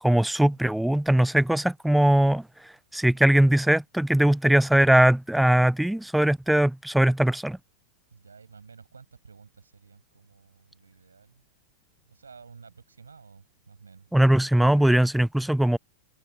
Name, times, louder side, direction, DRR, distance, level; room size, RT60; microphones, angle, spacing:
voice 1, 0.0-2.4 2.9-7.6 14.1-15.8, right 1 dB, ahead, 0.6 m, -20 dB
voice 2, 8.1-11.4 12.0-14.1, right 5 dB, 75° right, 7.6 m, -52 dB
figure-of-eight pair, 90°, 0 cm